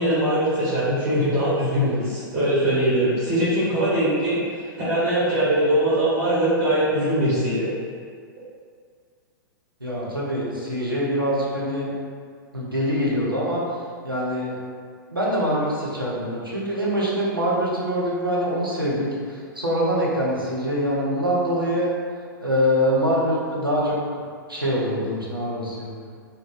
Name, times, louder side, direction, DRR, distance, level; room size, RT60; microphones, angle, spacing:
voice 1, 0.0-7.7, right 1 dB, 45° right, -11 dB, 1.2 m, -21 dB
voice 2, 9.8-11.9 12.5-13.6 14.0-14.6 15.1-21.9 22.4-24.0 24.5-25.9, equal, 90° right, -6 dB, 0.8 m, -24 dB
2.6 x 2.3 x 3.9 m, 2.1 s
figure-of-eight pair, 100°, 11 cm